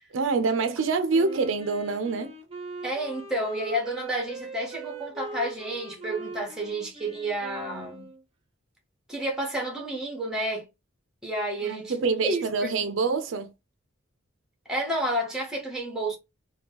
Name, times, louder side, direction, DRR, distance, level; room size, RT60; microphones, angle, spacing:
voice 1, 0.1-2.3 11.6-13.5, right 4 dB, 70° right, 0.5 m, -26 dB
Wind instrument woodwind instrument, 1.1-8.2, right 3 dB, 30° right, 0.7 m, -41 dB
voice 2, 2.8-8.1 9.1-10.7 11.2-12.7 14.7-16.2, right 1 dB, 5° right, 0.9 m, -30 dB
2.9 x 2.2 x 3.4 m
head